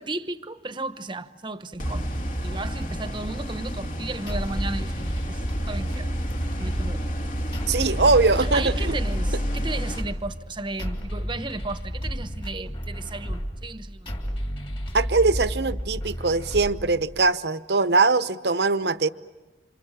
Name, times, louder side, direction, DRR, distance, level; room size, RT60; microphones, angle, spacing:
voice 1, 0.0-2.1 2.4-6.1 6.6-7.4 8.5-14.1, right 2 dB, 25° right, 1.0 m, -34 dB
sound 1, 1.8-10.0, equal, 50° left, 2.0 m, -30 dB
sound 2, 4.3-17.3, equal, 30° left, 3.1 m, -32 dB
voice 2, 7.7-8.9 14.9-19.1, right 3 dB, 65° right, 0.9 m, -21 dB
30.0 x 27.0 x 7.4 m
head